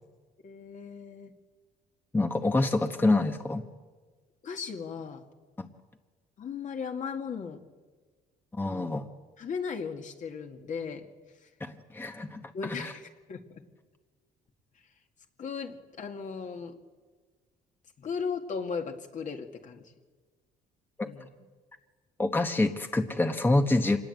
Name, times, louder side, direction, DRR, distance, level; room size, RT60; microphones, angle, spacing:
voice 1, 0.4-1.3 4.4-5.2 6.4-7.6 8.7-9.0 9.4-11.1 12.5-13.4 15.4-16.7 18.0-19.9 21.0-21.3, left 6 dB, 45° left, 4 dB, 2.1 m, -36 dB
voice 2, 2.1-3.6 5.6-5.7 8.5-9.1 11.6-12.9 21.0-21.1 22.2-24.0, left 2 dB, 10° left, 6 dB, 1.1 m, -27 dB
26.0 x 20.0 x 8.1 m, 1.4 s
cardioid pair, 110°, 17 cm